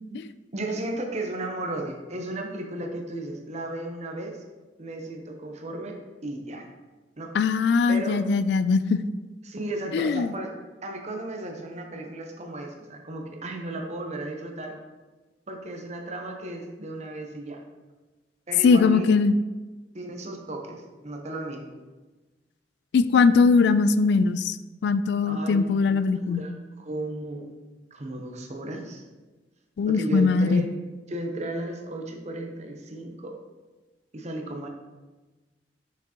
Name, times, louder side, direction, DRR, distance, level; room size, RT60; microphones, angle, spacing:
voice 1, 0.5-4.4 4.8-6.7 7.2-8.2 9.4-10.5 10.8-14.8 15.5-17.6 18.5-19.1 19.9-21.7 25.3-27.5 27.9-29.0 29.9-30.7 31.1-33.4 34.1-34.7, right 1 dB, 40° right, 3 dB, 0.9 m, -35 dB
voice 2, 7.3-9.0 9.9-10.3 18.6-19.4 22.9-24.6 24.8-26.5 29.8-30.7, left 4 dB, 70° left, 13 dB, 0.3 m, -21 dB
6.3 x 6.0 x 2.9 m, 1.2 s
head